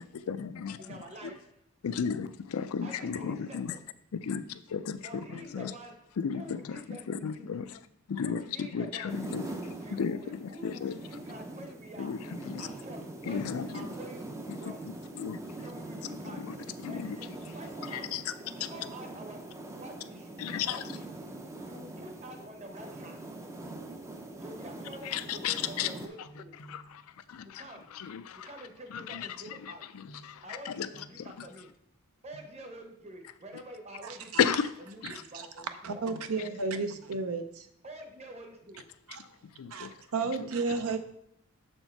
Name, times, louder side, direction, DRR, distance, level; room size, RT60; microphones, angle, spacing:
voice 1, 0.0-1.3 1.8-3.7 4.1-5.7 6.2-7.8 8.1-10.9 12.0-12.7 13.3-13.9 14.5-14.6 15.2-15.5 16.4-16.6 16.8-17.2 17.9-18.3 20.4-20.8 25.0-25.9 26.7-27.6 27.9-28.5 28.9-30.9 31.2-31.5 34.4-34.7 40.4-40.5, left 7 dB, 75° left, 0.4 m, -34 dB
voice 2, 0.8-1.6 2.8-3.8 5.0-7.5 8.2-9.2 9.8-12.3 12.6-15.0 15.6-21.4 21.7-23.3 24.4-26.6 27.4-28.0 28.3-30.0 30.4-31.8 32.2-34.4 34.9-35.0 35.3-36.3 37.8-38.9, right 1 dB, 30° right, 0.9 m, -48 dB
sound 1, 9.1-26.1, right 2 dB, 15° right, 0.4 m, -43 dB
sound 2, 26.2-27.4 27.8-28.0 30.1-30.6 30.9-31.8 32.3-32.5, right 1 dB, 60° left, 0.8 m, -54 dB
voice 3, 35.8-37.7 39.1-39.2 39.8-39.9 40.1-41.0, right 4 dB, 80° right, 0.6 m, -32 dB
6.7 x 4.4 x 4.4 m
head